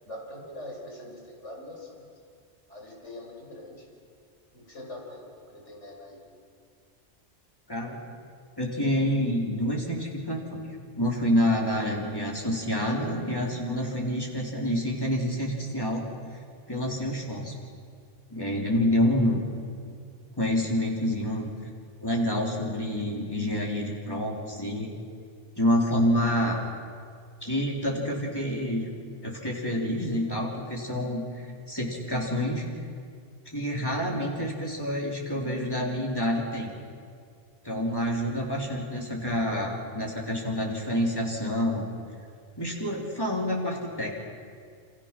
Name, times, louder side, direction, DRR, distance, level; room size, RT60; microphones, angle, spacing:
voice 1, 0.1-2.0 2.7-3.8 4.5-6.2, left 1 dB, 90° left, -1 dB, 5.4 m, -43 dB
voice 2, 7.7-8.0 8.6-16.1 16.7-17.5 18.3-19.4 20.4-21.5 22.0-24.9 25.6-26.6 27.4-28.9 29.2-32.8 33.5-36.7 37.6-41.9 42.6-44.1, equal, 20° left, -2 dB, 3.9 m, -28 dB
27.5 x 26.5 x 6.1 m, 2.2 s
omnidirectional pair, 1.2 m